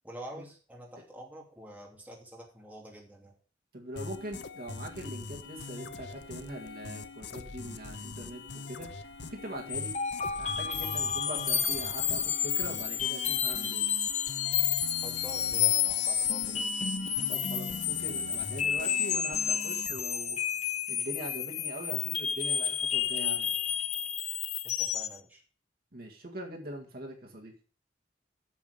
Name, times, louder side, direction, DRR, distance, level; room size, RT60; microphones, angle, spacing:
voice 1, 0.0-3.3 11.3-11.4 15.0-16.8 24.6-25.4, right 1 dB, 10° right, -2 dB, 2.7 m, -47 dB
voice 2, 3.7-9.9 10.4-13.9 17.3-20.4 20.9-23.6 25.9-27.5, right 1 dB, 55° right, 0 dB, 1.9 m, -42 dB
sound 1, 4.0-20.0, left 4 dB, 70° left, 0.8 m, -43 dB
sound 2, 9.7-25.2, left 8 dB, 40° left, 0.7 m, -30 dB
8.5 x 7.4 x 4.9 m, 0.38 s
head